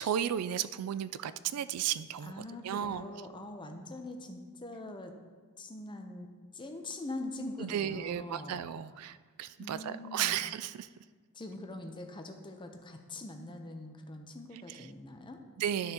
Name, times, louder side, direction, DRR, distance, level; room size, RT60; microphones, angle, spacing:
voice 1, 0.0-3.0 7.6-10.9 14.7-14.9 15.6-15.9, right 10 dB, 85° right, 14 dB, 0.3 m, -34 dB
voice 2, 2.2-5.1 5.6-6.3 6.5-8.7 9.6-10.4 11.3-15.4, left 1 dB, 20° left, 4 dB, 0.7 m, -43 dB
12.5 x 6.5 x 2.9 m, 1.5 s
head